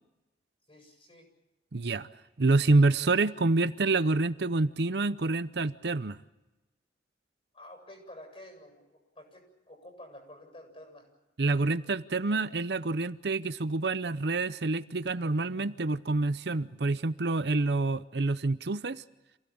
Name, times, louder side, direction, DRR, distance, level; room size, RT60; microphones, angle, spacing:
voice 1, 0.7-1.3 7.5-11.1, left 1 dB, 35° left, 7.8 m, -50 dB
voice 2, 1.7-2.1 2.4-6.2 11.4-19.0, right 3 dB, 65° right, 0.7 m, -27 dB
27.5 x 17.0 x 8.7 m
head